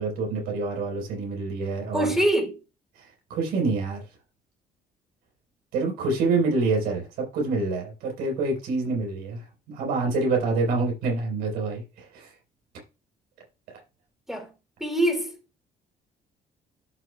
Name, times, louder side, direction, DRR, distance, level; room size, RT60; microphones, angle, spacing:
voice 1, 0.0-2.1 3.0-4.0 5.7-12.3 13.7-13.8, right 3 dB, 90° right, 4.3 m, -27 dB
voice 2, 1.9-2.5 14.3-14.5 14.8-15.3, right 1 dB, 5° right, 2.8 m, -24 dB
13.0 x 6.4 x 2.3 m
cardioid pair, 85°, 16 cm